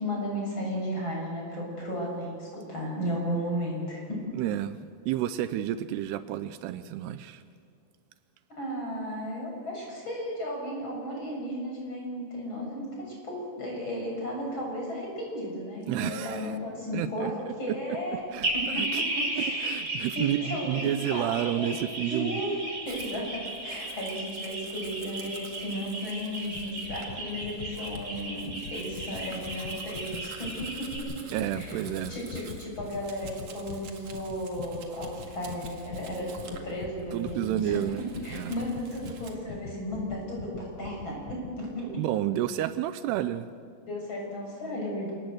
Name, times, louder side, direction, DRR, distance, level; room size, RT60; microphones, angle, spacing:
voice 1, 0.0-4.2 8.5-18.2 18.5-19.8 20.1-21.7 22.1-22.6 22.8-31.8 32.1-37.8 38.2-42.0 43.9-45.1, equal, 30° left, -2 dB, 7.6 m, -34 dB
voice 2, 4.3-4.8 5.1-7.4 15.9-16.5 16.9-17.8 18.3-19.0 19.4-22.4 31.3-32.1 37.1-38.0 38.3-38.5 41.9-43.5, right 12 dB, 80° right, 12 dB, 2.7 m, -30 dB
sound 1, 18.4-31.0, right 1 dB, 30° right, 6.9 m, -34 dB
Domestic sounds home sounds, 22.9-39.4, right 5 dB, 50° right, 2.6 m, -50 dB
sound 2, 26.5-41.6, left 5 dB, 65° left, 1.9 m, -44 dB
28.0 x 18.5 x 8.0 m, 2.3 s
omnidirectional pair, 4.8 m